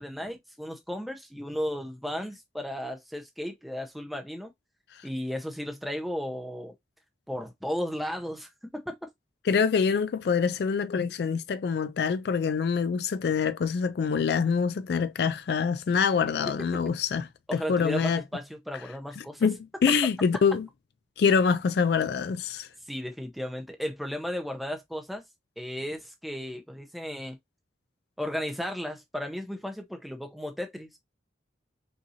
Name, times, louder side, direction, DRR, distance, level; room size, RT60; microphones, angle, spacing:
voice 1, 0.0-4.5 5.0-6.7 7.3-9.0 16.7-16.8 17.5-19.5 22.9-25.2 25.6-27.4 28.2-31.0, equal, ahead, 0.7 m, -35 dB
voice 2, 9.5-18.2 19.4-20.7 21.2-22.7, left 6 dB, 60° left, 0.3 m, -25 dB
5.5 x 2.6 x 2.7 m
head